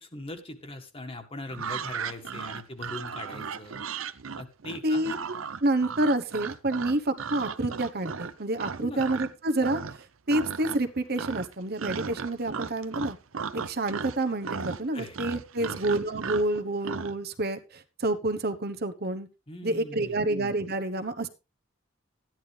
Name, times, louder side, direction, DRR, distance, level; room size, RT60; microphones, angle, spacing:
voice 1, 0.0-3.8 4.4-5.0 8.8-9.1 14.9-15.2 15.6-15.8 19.5-20.2, left 1 dB, 30° left, 6 dB, 1.7 m, -40 dB
sound 1, 1.5-9.3 9.6-10.0 10.3-10.9 11.2-17.1, right 6 dB, 90° right, 0.7 m, -36 dB
voice 2, 4.8-5.2 5.6-9.8 10.3-13.2 13.5-19.3 19.6-21.3, right 2 dB, 50° right, 9 dB, 1.1 m, -28 dB
13.5 x 10.5 x 3.4 m, 0.28 s
head